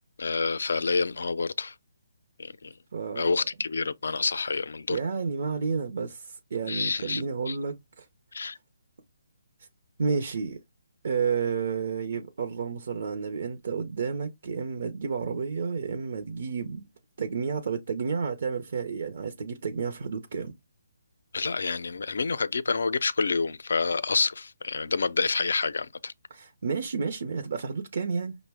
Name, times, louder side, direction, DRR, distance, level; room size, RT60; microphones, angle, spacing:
voice 1, 0.2-1.7 2.4-2.7 3.2-5.0 6.7-7.6 8.3-8.6 21.3-26.1, left 4 dB, 75° left, 0.4 m, -28 dB
voice 2, 2.9-3.4 4.9-8.1 10.0-10.6 11.0-16.9 17.2-20.5 26.3-28.4, right 5 dB, 55° right, 0.6 m, -31 dB
5.3 x 2.1 x 3.4 m
hypercardioid pair, 165°, 0 cm